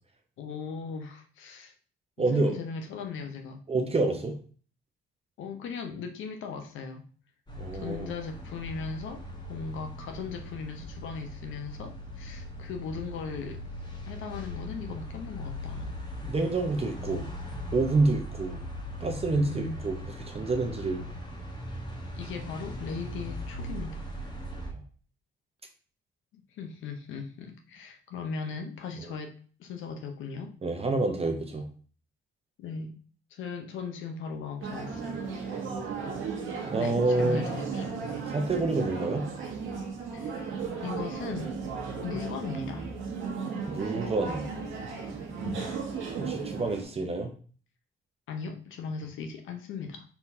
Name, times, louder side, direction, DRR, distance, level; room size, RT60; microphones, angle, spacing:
voice 1, 0.4-1.7 2.2-3.6 5.4-7.0 7.8-13.6 14.1-16.0 19.3-19.8 22.1-24.0 26.3-29.3 29.6-30.6 32.6-32.9 33.3-35.5 36.7-38.0 40.1-40.5 40.8-41.6 42.0-42.9 45.4-45.8 48.3-50.0, left 5 dB, 80° left, 5 dB, 0.8 m, -38 dB
voice 2, 2.2-2.6 3.7-4.3 7.5-8.1 16.2-17.3 17.7-18.6 19.0-21.0 24.7-24.8 30.6-31.6 36.5-37.5 38.3-39.2 43.6-44.4 46.2-47.3, right 3 dB, 30° right, 3 dB, 0.8 m, -28 dB
sound 1, 7.5-24.7, left 1 dB, 20° left, 1.2 m, -39 dB
sound 2, 34.6-46.8, right 5 dB, 85° right, 1.1 m, -35 dB
4.5 x 3.7 x 2.7 m, 0.42 s
cardioid pair, 90°, 20 cm